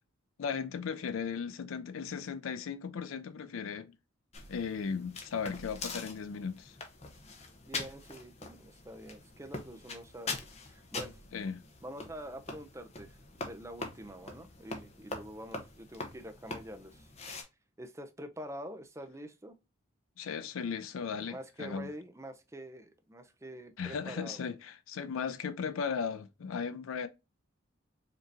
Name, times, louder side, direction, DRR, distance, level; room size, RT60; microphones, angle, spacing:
voice 1, 0.4-3.9 4.5-6.8 11.3-11.6 20.2-21.9 23.8-27.1, left 6 dB, 85° left, 0.4 m, -36 dB
sound 1, 4.3-17.4, left 3 dB, 30° left, 0.8 m, -44 dB
voice 2, 7.7-11.2 11.8-17.1 17.8-19.5 21.3-24.4, equal, 15° right, 0.4 m, -46 dB
5.1 x 2.7 x 2.5 m
head